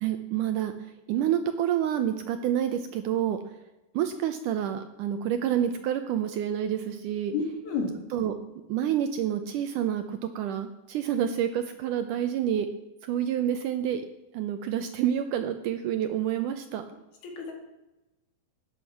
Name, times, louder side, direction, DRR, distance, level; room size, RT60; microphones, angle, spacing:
voice 1, 0.0-3.4 3.9-7.3 8.1-8.3 8.7-12.7 13.0-14.0 14.3-16.8, right 10 dB, 80° right, 8 dB, 1.9 m, -28 dB
voice 2, 7.3-8.0 17.2-17.5, left 4 dB, 70° left, 3 dB, 4.3 m, -30 dB
13.5 x 10.5 x 5.8 m, 1.0 s
omnidirectional pair, 4.5 m